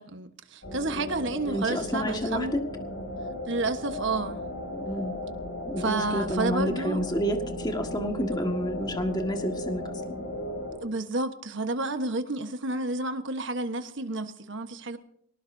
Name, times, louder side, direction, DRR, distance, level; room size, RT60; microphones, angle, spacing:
voice 1, 0.0-2.5 3.5-4.4 5.8-7.0 10.8-15.0, right 2 dB, 65° right, 1.3 m, -30 dB
sound 1, 0.6-10.8, left 1 dB, 65° left, 7.6 m, -36 dB
voice 2, 1.5-2.6 4.7-5.1 5.7-10.2, equal, 20° left, 1.8 m, -30 dB
24.0 x 19.0 x 2.7 m
head